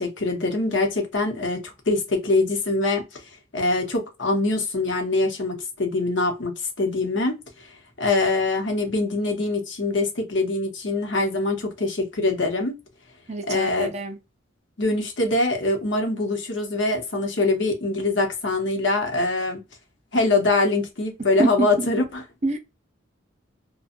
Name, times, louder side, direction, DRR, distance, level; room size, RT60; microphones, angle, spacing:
voice 1, 0.0-3.2 3.5-7.4 8.0-12.8 13.5-13.9 14.8-19.6 20.1-22.2, left 2 dB, 65° left, 0.9 m, -23 dB
voice 2, 13.3-14.2 21.4-21.9 22.4-22.6, right 2 dB, 35° right, 0.5 m, -26 dB
2.5 x 2.2 x 2.5 m
head